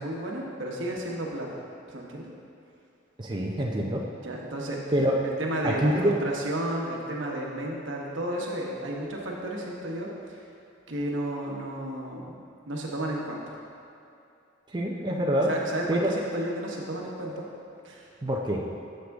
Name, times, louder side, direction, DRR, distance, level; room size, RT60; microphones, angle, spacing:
voice 1, 0.0-1.5 1.9-2.3 4.2-4.8 5.2-10.4 10.9-12.4 12.7-13.4 15.5-17.5 17.8-18.1, right 1 dB, 75° right, -2 dB, 1.1 m, -32 dB
voice 2, 3.2-4.0 4.9-5.1 5.6-6.2 14.7-15.5 15.9-16.1 18.2-18.6, right 1 dB, 25° right, -2 dB, 0.5 m, -25 dB
7.7 x 6.4 x 3.5 m, 2.7 s
head